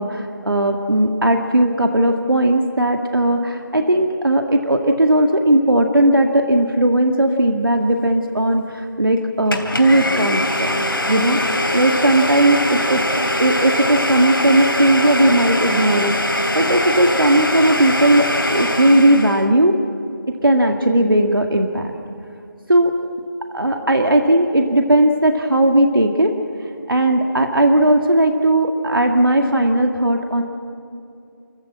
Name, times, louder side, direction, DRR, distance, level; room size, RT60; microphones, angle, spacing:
voice 1, 0.0-13.0 13.4-19.8 20.4-21.9 22.7-22.9 23.5-26.3 26.9-30.4, right 1 dB, 75° right, 3 dB, 2.1 m, -17 dB
Domestic sounds home sounds, 9.5-19.5, left 1 dB, 80° left, 3.2 m, -22 dB
29.0 x 15.0 x 7.6 m, 2.6 s
figure-of-eight pair, 170°, 12 cm